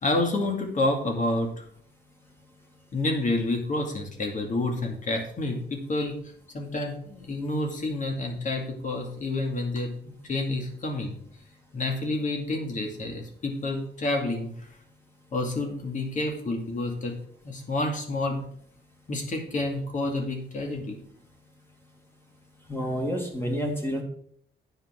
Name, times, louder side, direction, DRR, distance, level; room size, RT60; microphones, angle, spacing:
voice 1, 0.0-1.6 2.9-6.2 6.5-11.2 11.7-14.5 15.3-17.2 17.4-18.4 19.1-21.0, left 2 dB, 45° left, 2 dB, 2.3 m, -29 dB
voice 2, 22.7-24.0, equal, 10° left, 1 dB, 2.2 m, -29 dB
9.4 x 5.8 x 6.1 m, 0.63 s
wide cardioid pair, 140°, 18 cm